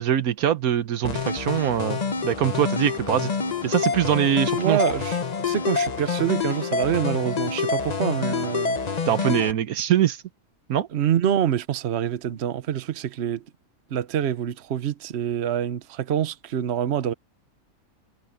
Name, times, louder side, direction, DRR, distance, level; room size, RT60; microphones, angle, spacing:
voice 1, 0.0-3.3 3.6-4.8 9.1-10.2 10.7-10.9, right 10 dB, 75° right, 1.3 m, -23 dB
sound 1, 1.0-9.5, left 5 dB, 35° left, 0.8 m, -27 dB
voice 2, 4.6-5.2 5.4-8.8 10.9-13.4 13.9-17.1, right 10 dB, 50° right, 1.0 m, -26 dB
omnidirectional pair, 1.6 m